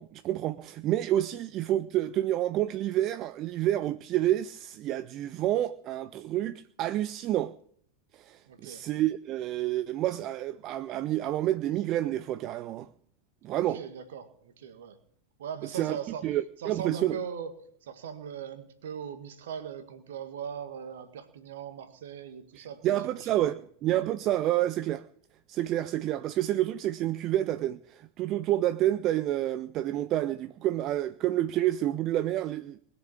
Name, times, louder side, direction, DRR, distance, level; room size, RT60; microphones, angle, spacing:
voice 1, 0.0-7.5 8.1-12.9 13.4-13.8 15.6-16.0 16.2-17.2 22.5-25.0 25.5-32.8, right 13 dB, 35° right, 0.5 m, -29 dB
voice 2, 8.5-8.8 13.5-15.0 15.4-16.3 16.6-17.5 17.8-23.6, right 8 dB, 60° right, 1.8 m, -40 dB
20.5 x 7.0 x 8.5 m
figure-of-eight pair, 90°, 0 cm